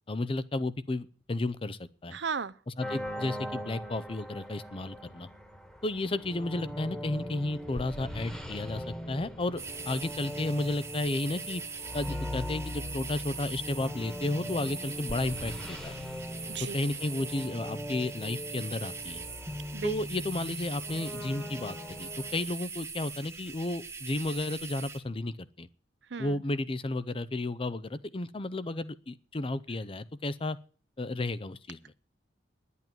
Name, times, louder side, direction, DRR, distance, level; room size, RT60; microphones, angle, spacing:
voice 1, 0.1-2.2 2.7-5.3 5.8-11.6 11.9-16.0 16.6-19.2 19.8-25.7 26.2-30.6 31.0-31.9, left 2 dB, 30° left, 0.6 m, -33 dB
voice 2, 2.1-2.5 16.5-16.7 19.7-19.9 26.1-26.4, right 5 dB, 70° right, 0.7 m, -35 dB
sound 1, 2.8-22.4, equal, 5° left, 1.5 m, -40 dB
sound 2, 9.6-25.0, right 5 dB, 15° right, 1.3 m, -42 dB
10.5 x 8.4 x 9.2 m
head